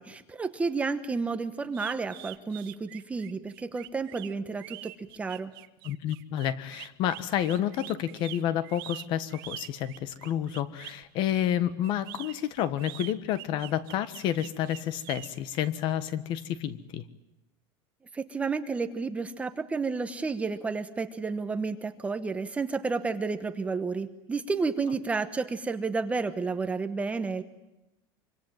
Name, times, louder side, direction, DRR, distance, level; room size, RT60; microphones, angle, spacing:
voice 1, 0.0-5.5 18.1-27.4, right 4 dB, 10° right, 9 dB, 1.1 m, -31 dB
sound 1, 1.7-11.0 11.8-15.3, right 19 dB, 85° right, 1.4 m, -44 dB
voice 2, 5.8-17.0, left 11 dB, 45° left, 14 dB, 1.4 m, -30 dB
25.5 x 25.5 x 9.1 m, 0.92 s
cardioid pair, 170°, 11 cm